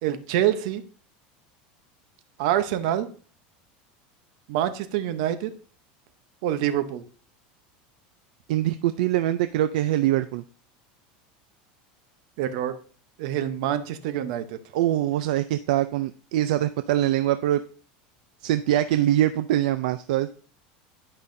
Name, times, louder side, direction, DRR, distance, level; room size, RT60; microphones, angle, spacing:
voice 1, 0.0-0.8 2.4-3.1 4.5-5.5 6.4-7.0 12.4-12.8 13.2-14.6, right 11 dB, 60° right, 10 dB, 0.8 m, -26 dB
voice 2, 8.5-10.4 14.7-17.6 18.4-20.3, right 13 dB, 75° right, 11 dB, 0.4 m, -23 dB
10.5 x 5.5 x 2.6 m, 0.42 s
supercardioid pair, 165°, 4 cm